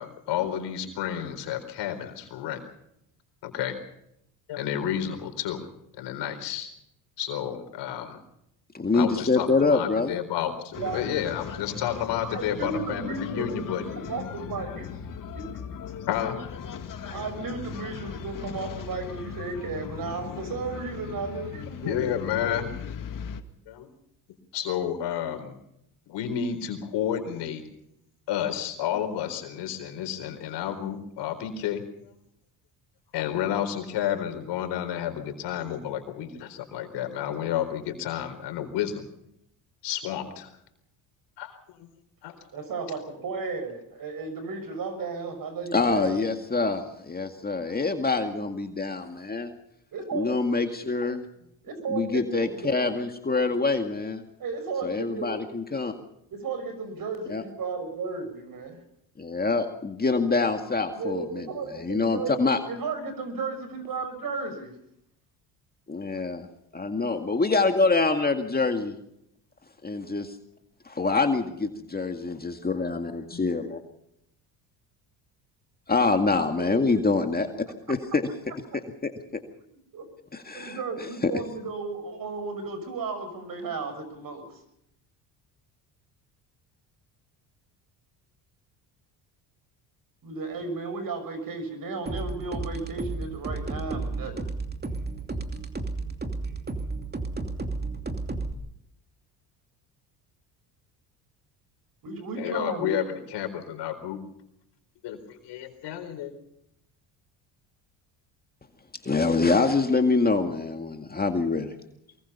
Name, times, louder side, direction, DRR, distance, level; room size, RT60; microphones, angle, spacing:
voice 1, 0.0-2.6 3.4-3.8 4.5-5.7 5.9-6.7 7.2-8.2 8.9-13.8 16.1-16.4 21.8-22.7 23.7-23.9 24.5-25.6 26.1-27.6 28.3-31.8 33.1-39.1 39.8-40.5 41.4-41.9 42.2-42.4 102.4-104.2 105.0-106.3, left 10 dB, 70° left, 7 dB, 4.3 m, -31 dB
voice 2, 8.7-10.2 45.7-49.5 50.1-51.2 51.9-54.2 54.8-55.9 57.3-57.4 59.2-61.5 61.7-62.6 65.9-66.5 66.7-69.0 69.8-70.4 70.9-73.8 75.9-77.5 77.9-78.2 79.0-79.1 80.3-81.3 109.0-111.7, left 3 dB, 20° left, 5 dB, 2.1 m, -25 dB
sound 1, 10.7-23.4, left 8 dB, 45° left, 2.1 m, -38 dB
voice 3, 12.2-14.9 17.0-22.6 42.5-46.2 49.9-50.4 51.6-52.7 54.4-55.4 56.3-58.8 60.9-62.4 62.7-64.7 76.6-76.8 79.9-80.0 80.5-84.5 90.2-94.4 102.0-102.9, right 4 dB, 50° right, 10 dB, 6.3 m, -34 dB
sound 2, 92.1-98.5, right 3 dB, 20° right, 2.8 m, -33 dB
23.5 x 22.0 x 5.6 m, 0.78 s
supercardioid pair, 80°, 43 cm